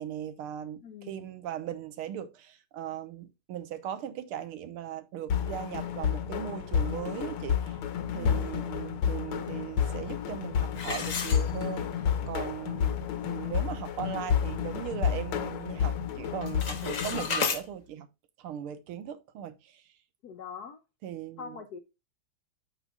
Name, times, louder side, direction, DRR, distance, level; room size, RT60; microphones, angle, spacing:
voice 1, 0.0-7.8 8.1-18.1 18.4-19.8 21.0-21.6, right 10 dB, 90° right, 1.8 m, -38 dB
voice 2, 0.8-1.3 8.1-8.6 20.2-20.8 21.4-21.8, left 6 dB, 65° left, 1.0 m, -43 dB
sound 1, 5.3-17.3, left 8 dB, 85° left, 1.9 m, -30 dB
sound 2, 10.7-12.0 12.5-12.6 13.1-13.2 13.6-13.9 14.4-15.5 15.7-16.1 16.3-17.6, left 5 dB, 45° left, 1.3 m, -33 dB
13.0 x 4.6 x 2.3 m
omnidirectional pair, 2.3 m